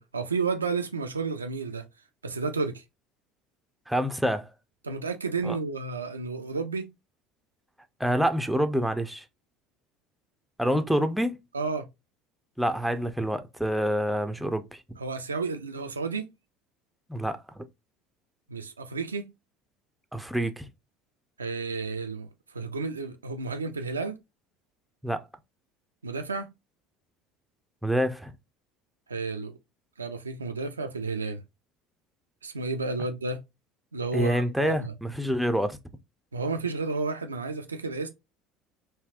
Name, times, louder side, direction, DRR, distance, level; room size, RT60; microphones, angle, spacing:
voice 1, 0.0-1.8 2.2-2.8 4.8-6.9 11.5-11.9 15.0-16.3 18.5-19.3 21.4-24.2 26.0-26.5 29.1-29.6 30.0-31.4 32.4-33.4 33.9-34.9 36.3-38.1, right 4 dB, 90° right, 0.3 m, -31 dB
voice 2, 3.9-4.5 5.4-5.6 8.0-9.2 10.6-11.4 12.6-14.8 17.1-17.6 20.1-20.7 25.0-25.2 27.8-28.3 34.1-35.8, equal, 5° right, 0.5 m, -27 dB
3.3 x 2.6 x 2.4 m
hypercardioid pair, 65°, 0 cm